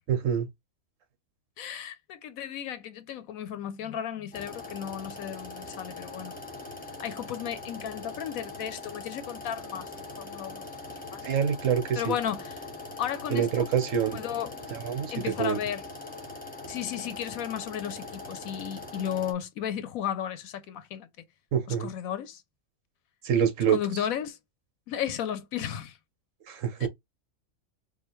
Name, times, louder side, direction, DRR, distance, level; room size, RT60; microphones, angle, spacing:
voice 1, 0.1-0.5 11.2-12.1 13.3-14.2 14.7-15.6 21.5-21.9 23.2-23.8 26.5-26.9, right 8 dB, 65° right, 1.2 m, -26 dB
voice 2, 1.6-6.3 7.0-11.3 12.0-12.6 13.0-13.7 14.1-14.7 15.1-15.8 16.7-21.1 21.7-22.4 23.7-24.4 24.9-26.0 26.8-26.9, left 9 dB, 80° left, 1.1 m, -34 dB
sound 1, 4.3-19.3, left 2 dB, 5° left, 1.0 m, -42 dB
4.9 x 2.5 x 3.0 m
omnidirectional pair, 1.5 m